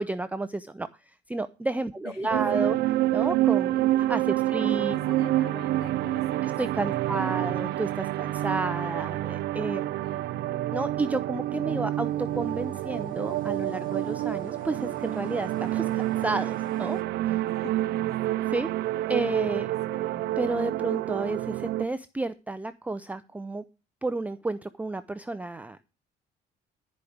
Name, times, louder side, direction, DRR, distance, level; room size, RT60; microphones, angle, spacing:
voice 1, 0.0-2.8 3.1-4.9 6.4-9.9 10.7-17.0 17.3-17.4 18.5-18.7 19.1-19.7 20.4-23.6 24.0-25.8, right 2 dB, 10° right, 11 dB, 0.5 m, -31 dB
voice 2, 2.0-2.7 4.5-6.6 7.1-7.7 9.9-10.5 17.5-18.4 19.9-20.4, left 7 dB, 75° left, 6 dB, 2.4 m, -46 dB
sound 1, 2.3-21.9, right 15 dB, 75° right, 0.6 m, -28 dB
sound 2, 9.4-17.0, left 5 dB, 55° left, 1.6 m, -51 dB
12.0 x 5.1 x 8.5 m, 0.31 s
cardioid pair, 110°, 17 cm